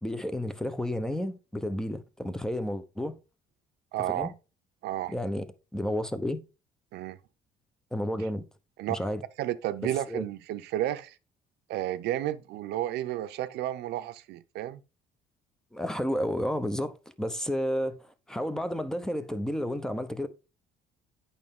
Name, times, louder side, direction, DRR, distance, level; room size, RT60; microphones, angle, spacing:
voice 1, 0.0-3.2 4.1-4.3 5.1-5.5 5.7-6.4 7.9-8.4 8.9-9.2 10.1-10.3 15.7-20.3, equal, 5° left, 0.8 m, -31 dB
voice 2, 3.9-4.3 4.8-5.1 6.9-7.2 8.8-9.0 9.4-11.2 11.7-14.8, right 13 dB, 80° right, 0.7 m, -32 dB
8.6 x 5.6 x 3.6 m
cardioid pair, 110°, 17 cm